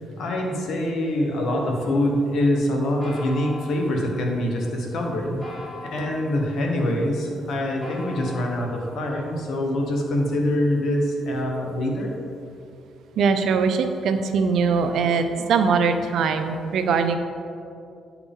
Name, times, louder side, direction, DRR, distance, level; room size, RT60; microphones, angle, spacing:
voice 1, 0.2-5.4 5.9-12.1, left 1 dB, 70° left, 1 dB, 1.2 m, -24 dB
sound 1, 1.8-12.0, left 1 dB, 25° left, 1.8 m, -44 dB
voice 2, 13.2-17.2, right 5 dB, 75° right, 7 dB, 0.5 m, -21 dB
9.9 x 4.7 x 3.6 m, 2.5 s
cardioid pair, 90°, 0 cm